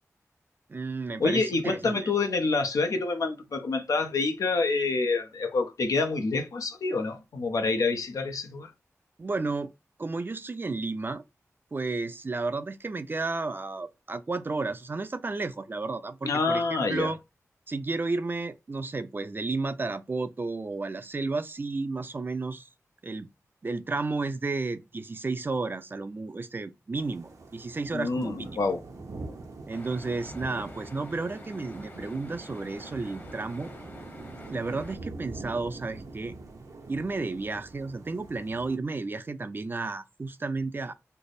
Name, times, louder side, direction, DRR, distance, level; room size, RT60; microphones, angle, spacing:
voice 1, 0.7-2.0 9.2-9.7 10.0-11.2 11.7-17.2 17.7-22.7 23.0-23.3 23.6-28.5 29.7-33.7 34.5-36.3 36.9-40.9, right 3 dB, 40° right, 0.4 m, -32 dB
voice 2, 1.2-8.7 16.2-17.1 27.9-28.8, left 3 dB, 90° left, 0.7 m, -27 dB
sound 1, 27.0-38.8, right 3 dB, 80° right, 0.8 m, -44 dB
sound 2, 29.7-35.0, left 2 dB, 35° left, 1.0 m, -48 dB
3.3 x 2.0 x 3.9 m
wide cardioid pair, 70°, 6 cm